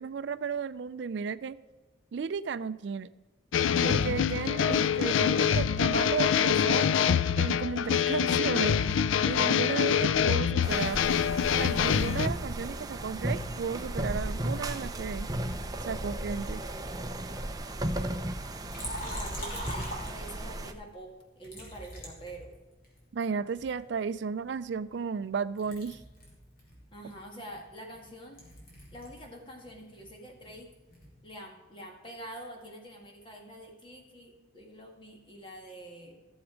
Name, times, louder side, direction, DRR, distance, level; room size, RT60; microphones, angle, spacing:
voice 1, 0.0-1.6 2.1-3.1 3.8-6.9 7.4-8.8 9.2-11.0 11.6-15.3 15.8-16.6 23.1-26.0, right 5 dB, 65° right, 15 dB, 0.4 m, -34 dB
sound 1, 3.5-12.3, left 8 dB, 90° left, 0.4 m, -25 dB
sound 2, 10.6-20.7, right 1 dB, 20° right, 0.6 m, -35 dB
Liquid, 18.6-20.6 21.4-23.0 23.6-25.3 25.6-29.3 29.5-31.2, equal, 45° left, 3.2 m, -43 dB
voice 2, 19.0-22.5 26.9-28.4 28.9-30.7 31.2-36.2, right 1 dB, 25° left, 1 dB, 2.0 m, -46 dB
15.0 x 7.1 x 5.1 m, 1.2 s
head